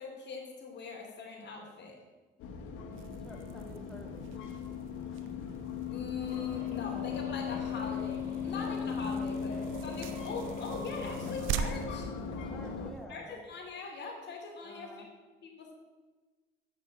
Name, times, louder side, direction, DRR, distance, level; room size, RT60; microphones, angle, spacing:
voice 1, 0.0-2.0 5.9-12.1 13.1-15.0 15.4-15.7, left 4 dB, 60° left, 1 dB, 2.7 m, -42 dB
sound 1, 2.4-12.9, left 7 dB, 90° left, 1.2 m, -38 dB
sound 2, 2.9-13.0, right 7 dB, 85° right, 0.6 m, -43 dB
voice 2, 3.2-4.3 12.4-13.4 14.6-15.1, left 1 dB, 5° left, 1 dB, 1.8 m, -50 dB
sound 3, 6.2-11.3, left 2 dB, 35° left, 3.8 m, -46 dB
7.9 x 6.6 x 7.6 m, 1.3 s
cardioid pair, 90°, 20 cm